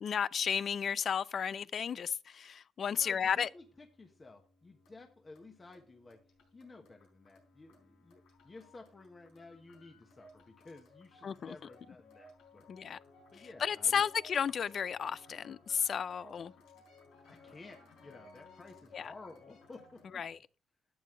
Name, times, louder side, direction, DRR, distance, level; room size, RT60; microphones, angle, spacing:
voice 1, 0.0-3.5 11.2-11.6 12.7-13.0 13.6-16.5 18.9-19.1 20.1-20.4, left 7 dB, 55° left, 0.4 m, -33 dB
sound 1, 3.0-20.3, left 2 dB, 90° left, 4.2 m, -60 dB
voice 2, 3.0-6.2 6.5-12.9 13.3-14.0 16.7-16.8 17.2-20.2, left 3 dB, 30° left, 1.3 m, -54 dB
11.5 x 8.4 x 3.2 m
cardioid pair, 90°, 0 cm